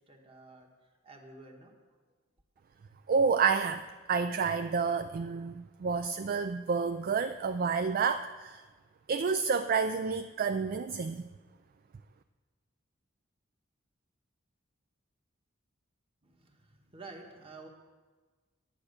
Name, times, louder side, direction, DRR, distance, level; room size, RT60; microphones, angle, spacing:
voice 1, 0.1-0.7 1.0-2.0 16.2-17.7, right 3 dB, 30° right, 2 dB, 1.4 m, -51 dB
voice 2, 3.1-3.8 4.1-8.6 9.1-11.3, right 5 dB, 45° right, 9 dB, 0.4 m, -29 dB
10.0 x 8.5 x 6.7 m, 1.4 s
head